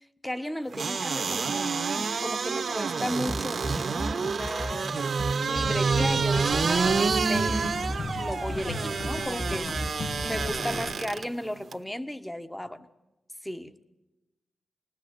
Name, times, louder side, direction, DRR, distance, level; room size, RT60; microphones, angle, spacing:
voice 1, 0.0-1.7 1.9-4.9 5.5-7.7 8.2-9.8 10.2-12.9 13.4-13.8, equal, 10° left, 1.2 m, -35 dB
sound 1, 0.7-11.2 11.7-11.8, right 5 dB, 65° right, 1.6 m, -28 dB
sound 2, 3.3-10.8, equal, 25° left, 1.7 m, -35 dB
sound 3, 5.6-10.9, left 3 dB, 70° left, 1.2 m, -37 dB
28.0 x 20.0 x 8.3 m
wide cardioid pair, 90°, 0 cm